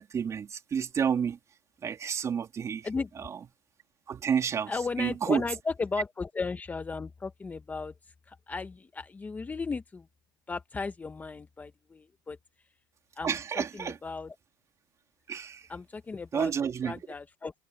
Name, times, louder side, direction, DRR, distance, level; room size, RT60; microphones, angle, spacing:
voice 1, 0.0-1.4 1.8-2.9 3.2-3.3 4.1-5.4 13.2-14.0 15.3-15.7 16.3-17.0, right 7 dB, 30° right, 3.5 m, -30 dB
voice 2, 2.8-3.3 4.7-7.9 8.3-10.1 10.5-12.4 13.2-14.4 15.7-16.5 16.8-17.5, left 4 dB, 15° left, 1.1 m, -35 dB
supercardioid pair, 115°, 10 cm